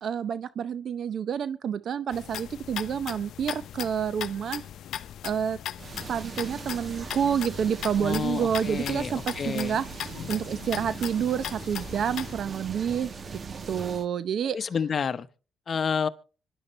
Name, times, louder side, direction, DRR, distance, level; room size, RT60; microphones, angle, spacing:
voice 1, 0.0-4.7 5.2-5.6 6.1-13.4 13.7-14.6, right 8 dB, 60° right, 0.7 m, -29 dB
sound 1, 2.1-12.4, left 10 dB, 70° left, 0.7 m, -38 dB
sound 2, 5.8-14.1, right 5 dB, 40° right, 1.1 m, -40 dB
voice 2, 8.0-9.8 14.5-15.3 15.7-16.1, left 6 dB, 45° left, 0.9 m, -29 dB
25.5 x 11.0 x 3.1 m
cardioid pair, 90°, 0 cm